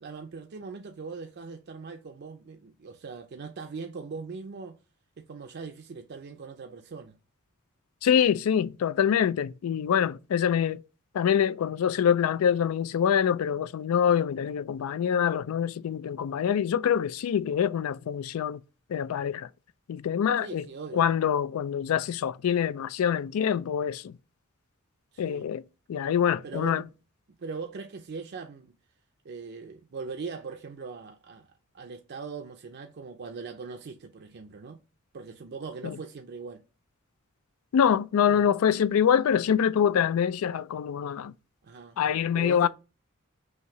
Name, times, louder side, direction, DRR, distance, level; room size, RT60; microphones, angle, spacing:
voice 1, 0.0-4.8 5.2-7.2 20.4-21.0 25.1-25.5 26.4-26.9 27.4-28.7 29.2-31.5 31.7-34.8 35.1-36.6 38.3-38.5 41.6-42.0 42.3-42.7, right 4 dB, 50° right, 0.5 m, -40 dB
voice 2, 8.0-10.8 11.1-18.6 18.9-19.5 19.9-20.6 20.9-24.2 25.2-26.8 35.8-36.0 37.7-41.3 42.0-42.7, left 8 dB, 90° left, 0.3 m, -25 dB
5.7 x 2.7 x 2.9 m
head